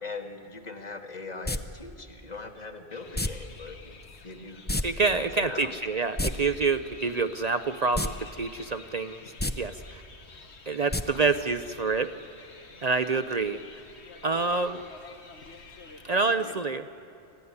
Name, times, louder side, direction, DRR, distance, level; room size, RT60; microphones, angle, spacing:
voice 1, 0.0-5.7 8.7-8.8 14.3-14.6 16.1-16.5, left 3 dB, 40° left, 4 dB, 1.8 m, -41 dB
sound 1, 1.4-1.6 3.1-3.3 4.7-4.8 5.1-5.2 6.0-6.3 7.9-8.1 8.5-8.6 9.3-9.5 10.9-11.0 11.3-11.4, left 1 dB, 15° left, 0.5 m, -27 dB
sound 2, 2.9-16.2, left 4 dB, 85° left, 1.7 m, -49 dB
voice 2, 4.8-9.2 9.6-10.0 10.7-12.1 12.8-13.6 14.2-14.8 16.0-16.9, right 4 dB, 45° right, 10 dB, 0.6 m, -27 dB
26.0 x 15.5 x 9.6 m, 2.6 s
omnidirectional pair, 1.1 m